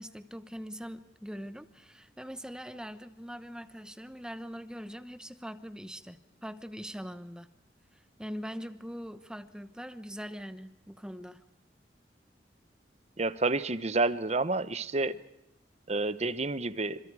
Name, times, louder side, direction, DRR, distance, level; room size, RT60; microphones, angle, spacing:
voice 1, 0.0-7.5 7.9-11.4, equal, 5° right, 1.0 m, -42 dB
voice 2, 13.2-15.1 15.9-17.0, right 3 dB, 40° right, 0.9 m, -29 dB
27.5 x 27.0 x 4.8 m
head